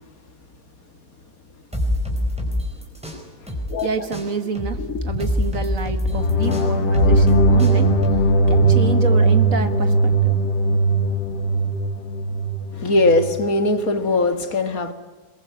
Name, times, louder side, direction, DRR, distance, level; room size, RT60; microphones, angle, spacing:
sound 1, 1.7-3.8 4.1-8.7, left 1 dB, 5° right, 4.6 m, -25 dB
voice 1, 3.8-7.9 8.5-10.4, right 5 dB, 55° right, 2.1 m, -28 dB
sound 2, 6.0-13.3, right 2 dB, 90° left, 2.0 m, -18 dB
voice 2, 12.7-14.9, left 2 dB, 60° left, 2.2 m, -20 dB
22.5 x 21.5 x 9.7 m
omnidirectional pair, 1.7 m